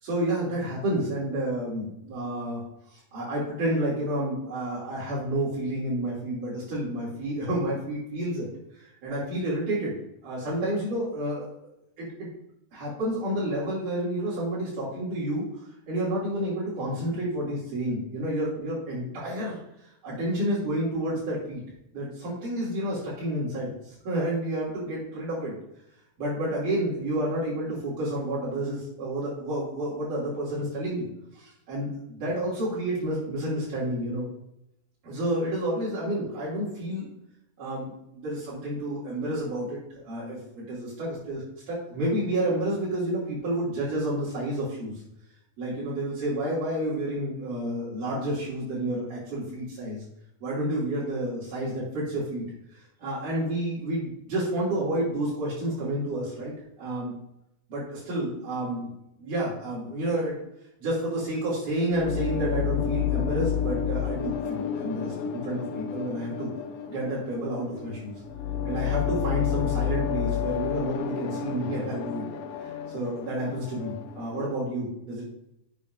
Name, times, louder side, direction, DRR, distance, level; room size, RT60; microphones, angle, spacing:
voice 1, 0.0-8.5 8.7-11.5 12.0-12.3 12.7-21.6 21.9-25.5 26.2-31.1 31.3-34.3 35.0-37.1 37.6-39.8 40.0-44.9 45.6-50.0 50.4-57.2 57.7-58.9 59.2-60.4 60.8-66.5 66.9-68.2 68.6-72.3 72.6-75.3, right 1 dB, 90° right, -8 dB, 4.2 m, -30 dB
sound 1, 61.9-74.5, left 9 dB, 75° left, 1.5 m, -31 dB
10.5 x 7.3 x 2.6 m, 0.83 s
omnidirectional pair, 3.5 m